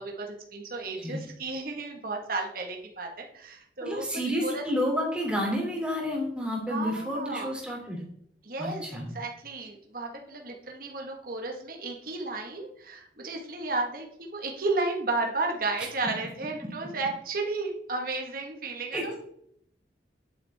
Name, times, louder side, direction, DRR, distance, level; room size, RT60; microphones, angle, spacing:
voice 1, 0.0-4.0 4.4-4.6 6.7-7.5 8.4-8.9 9.1-19.2, right 3 dB, 55° right, 1 dB, 1.6 m, -33 dB
voice 2, 3.8-8.0 8.6-9.1 18.9-19.2, equal, 5° right, -2 dB, 3.0 m, -30 dB
10.5 x 8.8 x 3.6 m, 0.70 s
head